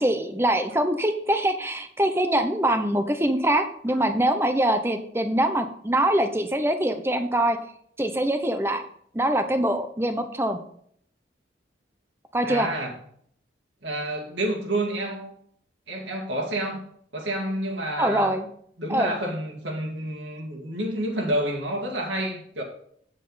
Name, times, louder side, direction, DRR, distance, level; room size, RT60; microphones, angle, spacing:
voice 1, 0.0-7.6 8.0-8.8 9.1-10.6 12.3-12.7 18.0-18.5 18.9-19.1, right 1 dB, 15° right, 7 dB, 0.8 m, -23 dB
voice 2, 12.4-12.9 13.8-15.3 15.9-16.8 17.1-18.3 18.8-22.6, right 1 dB, 80° right, -1 dB, 2.1 m, -29 dB
8.9 x 7.8 x 4.1 m, 0.63 s
head